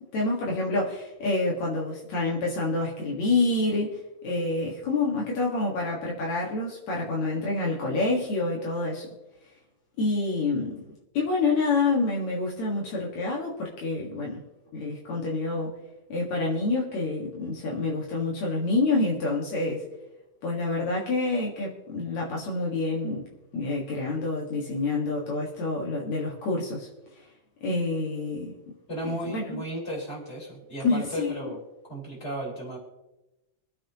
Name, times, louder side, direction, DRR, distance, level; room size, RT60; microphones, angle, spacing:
voice 1, 0.1-9.1 10.0-10.8 11.1-14.4 14.7-15.7 16.1-19.8 20.4-23.2 23.5-26.9 27.1-27.2 27.6-28.5 29.0-29.6 30.8-31.5, left 3 dB, 70° left, -3 dB, 3.0 m, -27 dB
voice 2, 28.9-31.6 31.9-32.8, right 1 dB, 20° left, -3 dB, 4.4 m, -34 dB
25.5 x 8.7 x 3.0 m, 0.97 s
omnidirectional pair, 3.3 m